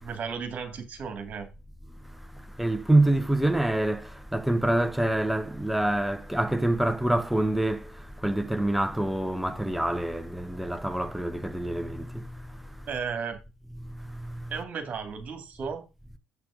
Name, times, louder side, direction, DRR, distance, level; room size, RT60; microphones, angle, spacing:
voice 1, 0.0-1.5 12.9-13.4 14.5-15.8, right 6 dB, 45° right, 2.5 m, -34 dB
voice 2, 2.6-4.0 4.3-7.8 8.2-12.1, right 1 dB, 5° right, 0.9 m, -25 dB
8.0 x 6.0 x 5.0 m
figure-of-eight pair, 55°, 4 cm